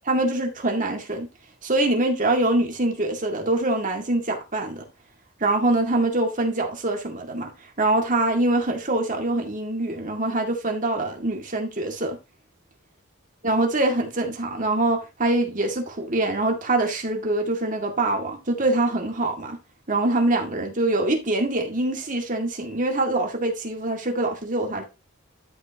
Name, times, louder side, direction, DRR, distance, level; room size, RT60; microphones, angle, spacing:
voice 1, 0.1-1.3 1.6-4.8 5.4-7.5 7.8-12.2 13.4-19.6 19.9-24.8, right 2 dB, 40° right, 2.1 m, -24 dB
13.0 x 5.5 x 2.9 m
head